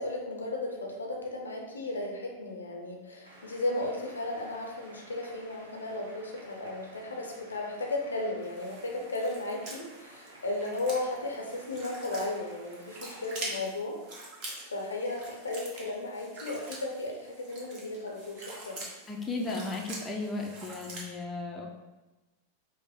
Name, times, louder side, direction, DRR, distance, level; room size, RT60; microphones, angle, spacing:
voice 1, 0.0-14.0 14.6-18.8, left 2 dB, 75° left, 0 dB, 0.6 m, -35 dB
sound 1, 3.2-13.6, equal, 70° right, 0.9 m, -54 dB
sound 2, 8.4-21.1, right 1 dB, 40° right, 1.0 m, -45 dB
voice 2, 19.1-21.7, left 3 dB, 15° left, -1 dB, 0.6 m, -35 dB
5.0 x 2.1 x 3.5 m, 1.1 s
figure-of-eight pair, 90°, 0 cm